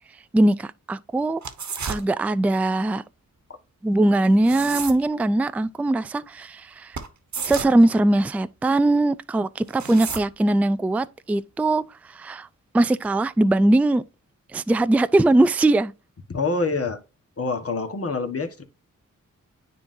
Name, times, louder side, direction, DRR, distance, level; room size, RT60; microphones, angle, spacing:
voice 1, 0.3-1.4 1.9-3.0 3.8-7.0 7.4-12.5 12.7-14.0 14.5-15.9, right 2 dB, 5° right, 0.3 m, -21 dB
sound 1, 1.4-2.0 4.2-5.0 6.9-7.1 7.3-7.8 9.7-10.3, right 5 dB, 55° right, 1.2 m, -31 dB
voice 2, 16.3-17.0 17.4-18.6, left 3 dB, 45° left, 1.4 m, -26 dB
9.8 x 3.8 x 2.7 m
cardioid pair, 70°, 33 cm